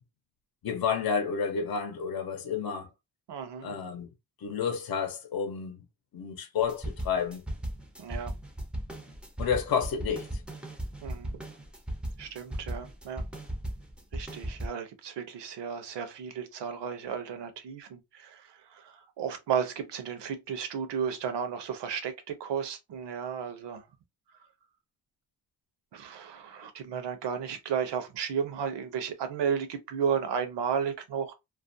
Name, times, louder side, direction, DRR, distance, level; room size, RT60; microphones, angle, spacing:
voice 1, 0.6-2.9 3.6-4.1 4.4-5.8 6.1-7.4 9.4-10.3, left 6 dB, 60° left, 0.7 m, -30 dB
voice 2, 3.3-3.8 8.0-8.3 11.0-11.4 12.2-13.2 14.1-23.9 25.9-31.3, right 7 dB, 80° right, 0.7 m, -33 dB
sound 1, 6.6-14.7, right 1 dB, 5° right, 0.4 m, -36 dB
2.4 x 2.1 x 2.6 m
cardioid pair, 115°, 41 cm